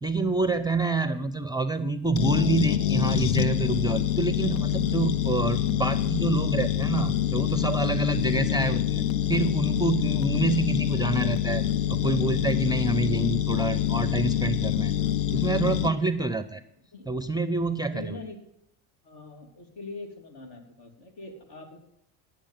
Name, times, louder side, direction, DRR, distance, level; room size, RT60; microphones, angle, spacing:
voice 1, 0.0-14.9 15.3-16.6 17.1-18.2, right 3 dB, 10° right, 12 dB, 0.5 m, -27 dB
sound 1, 2.2-15.9, left 11 dB, 85° left, 0.8 m, -26 dB
voice 2, 17.9-18.4 19.0-21.8, left 3 dB, 55° left, 6 dB, 2.9 m, -42 dB
10.0 x 7.3 x 7.4 m, 0.77 s
supercardioid pair, 75°, 46 cm